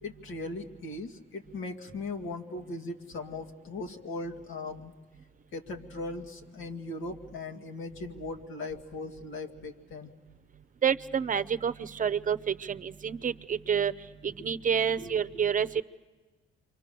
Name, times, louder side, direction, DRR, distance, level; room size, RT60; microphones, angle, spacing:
voice 1, 0.0-4.9 5.5-10.1 15.0-15.1, left 2 dB, 85° left, 4 dB, 2.3 m, -39 dB
voice 2, 10.8-15.8, right 7 dB, 40° right, 13 dB, 0.8 m, -29 dB
28.5 x 24.5 x 6.9 m, 1.3 s
cardioid pair, 90°, 20 cm